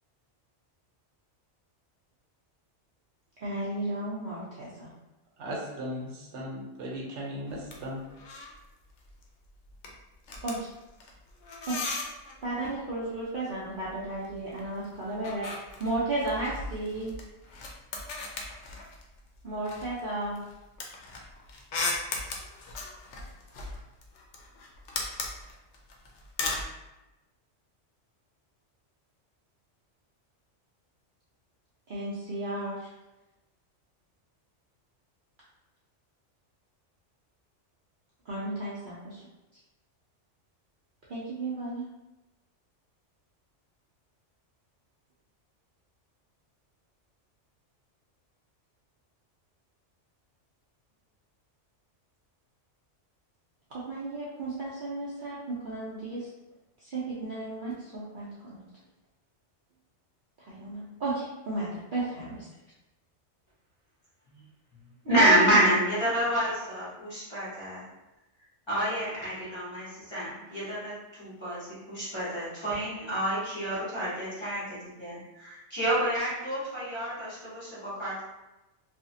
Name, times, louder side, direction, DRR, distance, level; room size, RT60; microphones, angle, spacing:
voice 1, 3.4-4.9 10.4-10.7 11.7-11.9 12.4-15.5 15.8-17.1 19.4-20.4 31.9-32.9 38.3-39.2 41.1-41.9 53.7-56.3 56.8-58.6 60.4-62.5 65.1-65.7, right 2 dB, 55° right, -7 dB, 0.6 m, -33 dB
voice 2, 5.4-8.0, equal, 75° right, -2 dB, 0.9 m, -37 dB
sound 1, 7.5-8.6 8.9-9.2 9.5-12.4 13.6-14.7 14.9-19.2 19.7-26.7, left 3 dB, 75° left, 0.9 m, -37 dB
voice 3, 65.1-67.8 68.7-78.2, right 1 dB, 25° left, -10 dB, 0.9 m, -28 dB
2.8 x 2.4 x 2.6 m, 1.0 s
omnidirectional pair, 1.2 m